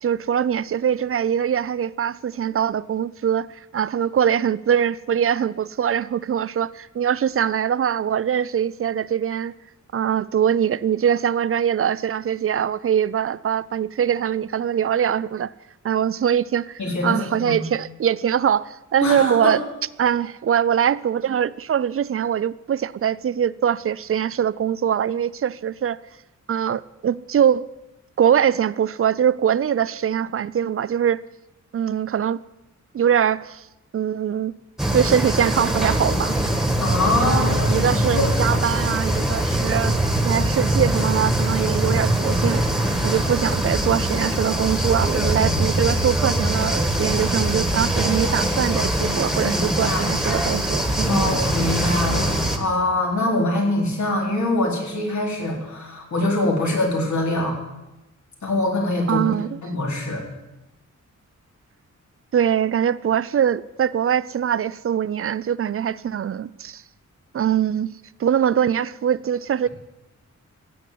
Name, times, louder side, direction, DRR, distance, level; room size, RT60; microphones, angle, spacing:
voice 1, 0.0-9.5 9.9-15.5 15.8-19.6 20.0-26.0 26.5-27.7 28.2-31.2 31.7-32.4 32.9-33.7 33.9-34.5 34.9-36.4 37.2-39.9 40.2-42.6 43.0-51.4 59.1-59.6 62.3-66.8 67.3-67.9 68.2-69.7, right 9 dB, 50° right, 0.4 m, -22 dB
voice 2, 16.8-17.6 19.0-19.5 36.8-38.3 49.4-50.2 51.1-57.6 58.4-59.3 59.6-60.2, left 2 dB, 70° left, 4.2 m, -24 dB
sound 1, 34.8-52.6, right 1 dB, ahead, 1.6 m, -22 dB
16.0 x 8.4 x 8.5 m
wide cardioid pair, 145°, 30 cm